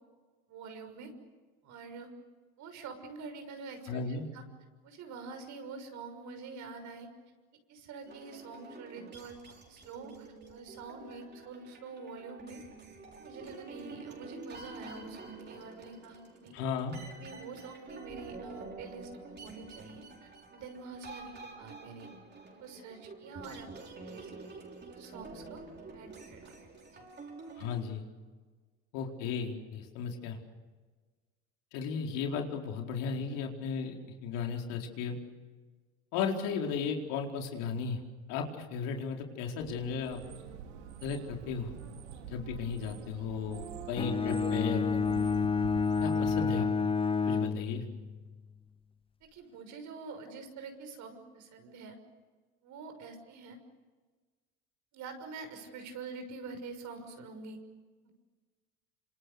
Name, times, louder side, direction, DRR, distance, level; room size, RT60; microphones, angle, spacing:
voice 1, 0.5-1.1 1.6-2.1 2.6-4.4 4.8-7.1 7.7-12.6 13.2-16.5 17.2-22.1 22.5-23.7 24.0-24.3 24.9-25.6 25.9-26.5 26.9-27.0 49.3-52.0 52.6-53.6 54.9-57.6 58.0-58.1, right 4 dB, 60° right, 6 dB, 6.2 m, -46 dB
voice 2, 3.9-4.3 16.5-17.0 27.6-28.0 28.9-30.4 31.7-35.2 36.1-38.0 38.3-40.2 41.0-41.7 42.3-44.8 46.0-46.7 47.3-47.8, left 6 dB, 70° left, 2 dB, 4.5 m, -35 dB
sound 1, 8.1-27.8, right 3 dB, 30° right, 6.4 m, -48 dB
sound 2, 39.6-46.7, right 8 dB, 85° right, 2.6 m, -46 dB
Bowed string instrument, 44.0-48.2, left 5 dB, 15° left, 0.9 m, -29 dB
27.5 x 26.5 x 6.7 m, 1.4 s
hypercardioid pair, 85°, 34 cm